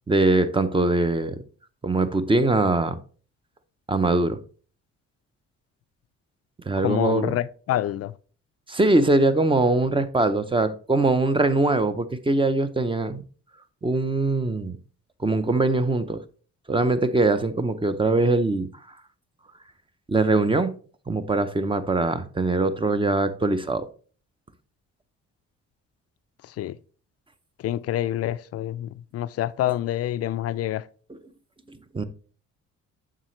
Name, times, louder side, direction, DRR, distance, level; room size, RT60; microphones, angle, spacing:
voice 1, 0.1-1.4 1.8-3.0 3.9-4.4 6.7-7.3 8.7-13.2 13.8-14.8 15.2-16.2 16.7-18.7 20.1-20.7 21.1-23.9 31.1-31.2 31.9-32.0, right 2 dB, 15° right, 0.6 m, -22 dB
voice 2, 6.8-8.1 26.6-26.8 27.6-30.8, left 13 dB, 55° left, 0.4 m, -27 dB
7.4 x 5.7 x 3.1 m
cardioid pair, 90°, 30 cm